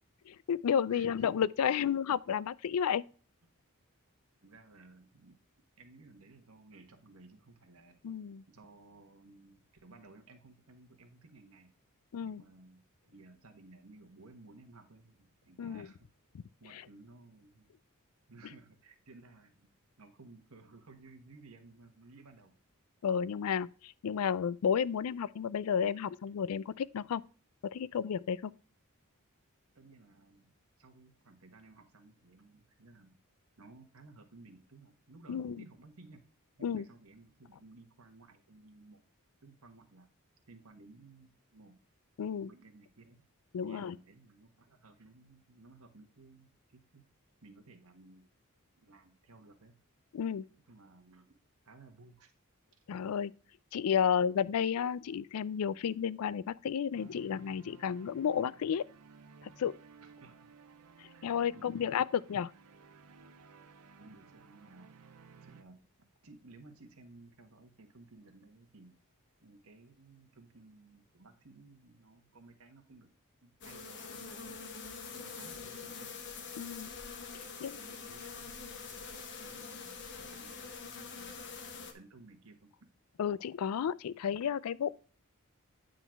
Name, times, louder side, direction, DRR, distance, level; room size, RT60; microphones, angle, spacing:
voice 1, 0.3-3.0 8.0-8.4 12.1-12.4 15.6-15.9 23.0-27.2 27.7-28.5 35.3-35.6 36.6-36.9 42.2-42.5 43.5-43.9 50.1-50.4 52.9-53.3 53.7-58.8 59.4-59.7 61.0-62.5 76.6-76.9 77.6-77.8 83.2-84.9, left 7 dB, 75° left, 0.4 m, -32 dB
voice 2, 0.9-1.8 4.4-5.4 5.8-8.0 8.5-11.7 12.2-16.1 16.6-17.7 18.3-22.5 26.1-26.2 29.7-33.2 33.6-36.2 36.6-39.0 39.4-40.1 40.5-41.7 42.5-43.2 43.6-47.0 47.4-48.3 48.8-49.7 50.6-51.4 51.6-52.3 54.0-54.2 60.0-60.5 61.1-61.9 62.4-62.5 64.0-64.9 65.3-65.8 66.2-69.0 69.4-73.1 73.4-74.6 75.1-76.1 77.4-79.0 79.4-80.0 80.3-81.4 81.9-82.9, right 3 dB, 70° right, 1.4 m, -57 dB
sound 1, 56.9-65.6, right 5 dB, 90° right, 0.6 m, -57 dB
sound 2, 73.6-81.9, left 5 dB, 55° left, 1.2 m, -45 dB
9.2 x 3.9 x 4.6 m
head